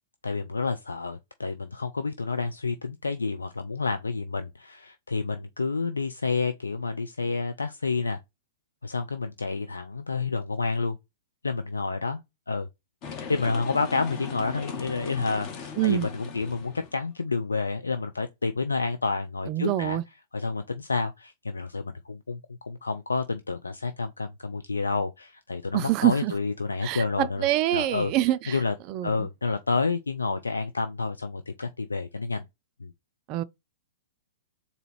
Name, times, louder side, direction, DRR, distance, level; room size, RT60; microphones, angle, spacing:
voice 1, 0.2-8.2 8.8-11.0 11.4-12.2 12.5-12.7 13.3-20.0 20.3-28.1 28.5-28.7 29.0-32.4 32.8-32.9, left 4 dB, 80° left, 0.4 m, -29 dB
sound 1, 13.0-17.0, left 5 dB, 35° left, 0.9 m, -39 dB
voice 2, 15.8-16.1 19.5-20.0 25.7-26.3 26.8-28.6 28.9-29.3 33.3-33.4, right 15 dB, 35° right, 0.4 m, -25 dB
3.9 x 2.7 x 4.3 m
figure-of-eight pair, 105°, 0 cm